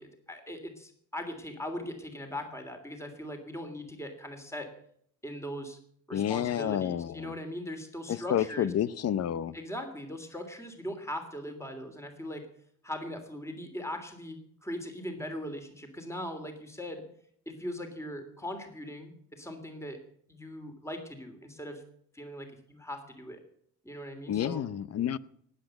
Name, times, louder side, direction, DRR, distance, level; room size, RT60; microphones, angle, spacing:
voice 1, 0.0-4.7 5.2-5.8 6.1-8.7 9.5-12.5 12.8-17.0 17.4-20.0 20.3-21.8 22.1-23.4 23.8-24.6, left 1 dB, 10° left, 6 dB, 3.2 m, -40 dB
voice 2, 6.1-7.3 8.1-9.6 24.3-25.2, left 10 dB, 55° left, 18 dB, 0.8 m, -30 dB
19.0 x 8.3 x 7.8 m, 0.65 s
cardioid pair, 90°, 30 cm